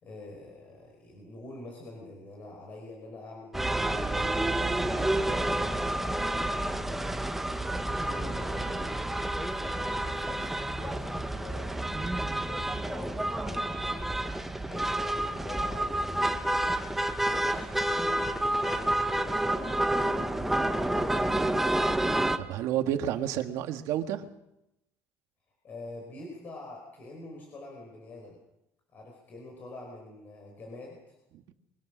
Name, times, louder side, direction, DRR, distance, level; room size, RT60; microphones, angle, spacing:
voice 1, 0.0-4.1 4.8-7.5 7.9-8.8 9.5-16.8 17.2-21.4 25.6-28.4 28.9-31.2, left 2 dB, 35° left, 1 dB, 4.8 m, -46 dB
sound 1, 3.5-22.4, right 1 dB, 5° right, 1.0 m, -29 dB
voice 2, 22.4-24.3 31.5-31.6, right 11 dB, 65° right, 8 dB, 1.7 m, -30 dB
23.5 x 19.0 x 6.3 m, 0.87 s
cardioid pair, 165°, 6 cm